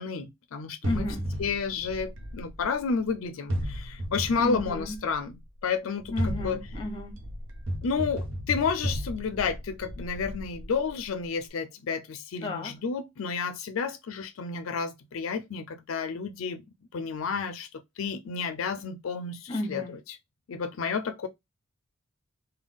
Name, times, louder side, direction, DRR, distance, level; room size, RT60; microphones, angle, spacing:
voice 1, 0.0-1.1 1.4-6.6 7.8-16.6 16.9-19.8 20.5-21.3, left 5 dB, 80° left, 0.4 m, -31 dB
voice 2, 0.8-1.3 4.4-5.0 6.1-7.2 12.4-12.8 19.5-20.0, left 2 dB, 25° left, 0.9 m, -33 dB
sound 1, 0.8-3.0 3.5-5.3 6.0-11.1, equal, 65° right, 0.8 m, -34 dB
3.4 x 2.2 x 3.4 m
head